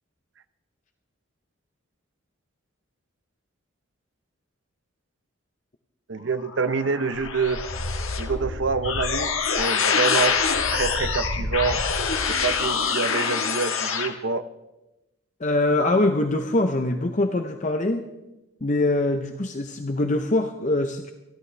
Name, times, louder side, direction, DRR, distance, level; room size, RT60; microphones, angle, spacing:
voice 1, 6.1-7.6 8.2-10.4 10.7-11.8 12.3-14.4, right 4 dB, 60° right, 12 dB, 0.7 m, -26 dB
sound 1, 6.4-14.1, left 5 dB, 80° left, 1.5 m, -25 dB
voice 2, 15.4-18.0 18.6-21.1, left 2 dB, 35° left, 6 dB, 0.7 m, -23 dB
27.0 x 11.5 x 3.3 m, 0.99 s
head